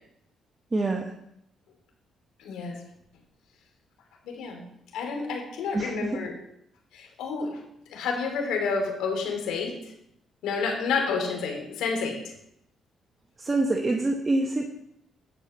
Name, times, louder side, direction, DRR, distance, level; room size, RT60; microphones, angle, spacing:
voice 1, 0.7-1.0 5.7-6.2 13.4-14.7, right 2 dB, 25° right, 2 dB, 1.2 m, -25 dB
voice 2, 2.4-2.8 4.2-4.6 4.9-6.3 6.9-7.6 7.9-9.9 10.4-12.3, left 5 dB, 90° left, 2 dB, 2.9 m, -29 dB
11.0 x 5.1 x 7.8 m, 0.77 s
cardioid pair, 90°, 0 cm